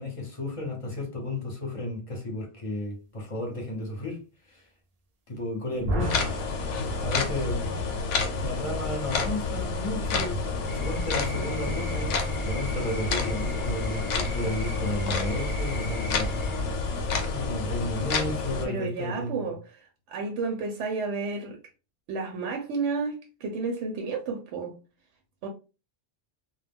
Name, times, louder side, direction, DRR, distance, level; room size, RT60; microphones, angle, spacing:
voice 1, 0.0-4.2 4.5-4.7 5.3-6.3 7.0-7.7 8.3-16.3 17.2-19.4, left 2 dB, 35° left, 0.7 m, -33 dB
sound 1, 5.7-7.6 10.6-12.9, right 1 dB, 60° right, 0.4 m, -36 dB
sound 2, 6.0-18.7, left 3 dB, 85° left, 0.9 m, -29 dB
sound 3, 10.7-16.6, equal, ahead, 0.9 m, -36 dB
voice 2, 18.6-19.8 20.1-21.6 22.1-24.8 25.4-25.5, right 4 dB, 75° right, 0.9 m, -31 dB
2.2 x 2.0 x 3.4 m
omnidirectional pair, 1.2 m